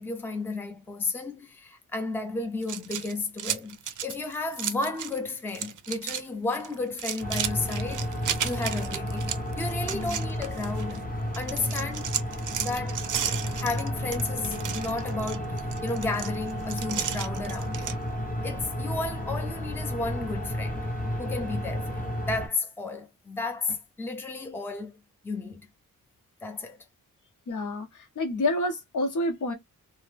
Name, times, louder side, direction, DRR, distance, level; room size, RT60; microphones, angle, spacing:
voice 1, 0.0-8.0 8.4-12.1 12.6-13.0 13.5-18.0 18.4-20.9 21.2-25.0 25.2-25.7 26.4-26.8, left 3 dB, 5° left, 0.5 m, -33 dB
sound 1, 2.6-5.2 5.5-6.2 6.5-11.0 11.3-18.0, right 9 dB, 65° right, 0.5 m, -34 dB
sound 2, 7.2-22.5, equal, 25° left, 0.8 m, -32 dB
voice 2, 27.5-29.5, left 2 dB, 65° left, 0.8 m, -29 dB
2.7 x 2.0 x 3.2 m
wide cardioid pair, 145°, 33 cm